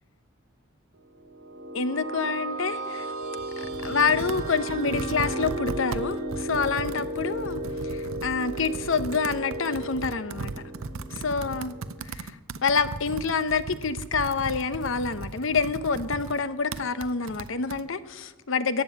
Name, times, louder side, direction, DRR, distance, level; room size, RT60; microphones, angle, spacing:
sound 1, 1.2-12.0, right 2 dB, 85° right, 2.2 m, -34 dB
voice 1, 1.7-3.1 3.8-10.5 11.1-11.8 12.0-12.3 12.6-18.8, left 5 dB, 60° left, 0.7 m, -27 dB
Computer keyboard, 3.2-17.8, right 4 dB, 70° right, 0.6 m, -38 dB
14.5 x 7.6 x 9.3 m
head